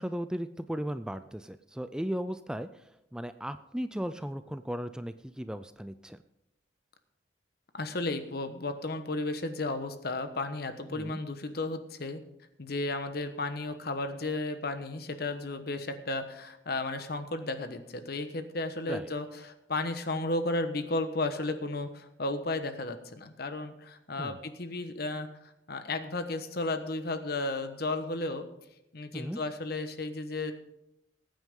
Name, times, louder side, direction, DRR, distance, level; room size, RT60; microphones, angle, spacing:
voice 1, 0.0-6.2 10.9-11.2 18.9-19.1 24.2-24.4 29.1-29.4, equal, 5° right, 11 dB, 0.4 m, -36 dB
voice 2, 7.7-12.2 12.6-28.4 28.9-30.5, left 2 dB, 60° left, 9 dB, 1.1 m, -34 dB
20.0 x 9.1 x 3.7 m, 0.88 s
head